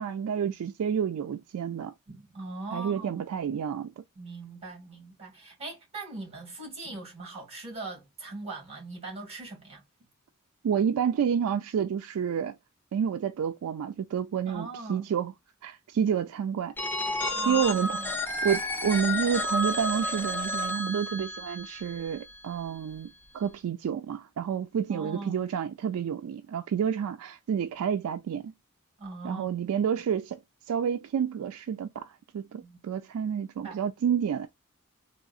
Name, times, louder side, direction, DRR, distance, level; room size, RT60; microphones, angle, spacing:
voice 1, 0.0-1.9 2.7-3.9 10.6-12.5 12.9-15.3 15.6-16.7 17.3-18.0 18.4-28.5 29.2-30.4 30.7-34.5, right 8 dB, 85° right, 0.3 m, -29 dB
voice 2, 2.1-3.4 4.2-9.8 14.5-15.1 17.3-18.1 24.9-25.5 29.0-29.5 32.6-32.8 33.6-33.8, right 2 dB, 30° right, 1.9 m, -41 dB
Telephone, 16.8-22.5, left 1 dB, 10° left, 0.5 m, -31 dB
3.6 x 2.0 x 2.3 m
head